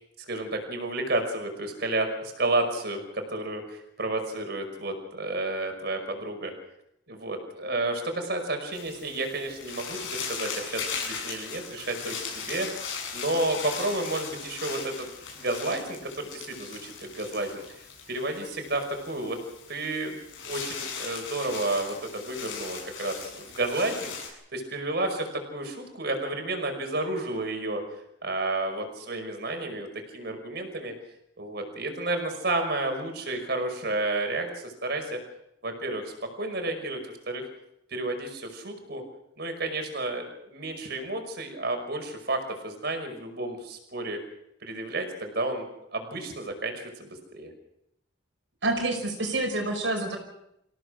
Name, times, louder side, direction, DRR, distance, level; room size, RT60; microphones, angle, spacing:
voice 1, 0.3-6.5 7.1-12.7 13.1-15.1 15.3-17.6 18.1-19.4 19.7-20.1 20.5-27.8 28.2-29.9 30.1-30.9 31.4-35.2 35.6-37.0 37.3-37.5 37.9-39.0 39.4-44.2 44.6-45.7 45.9-47.5, right 2 dB, 55° right, 5 dB, 5.4 m, -31 dB
sound 1, 8.7-24.3, left 6 dB, 85° left, 7.7 m, -38 dB
voice 2, 48.6-50.2, right 2 dB, 75° right, 2 dB, 5.4 m, -27 dB
27.0 x 17.0 x 6.5 m, 0.79 s
head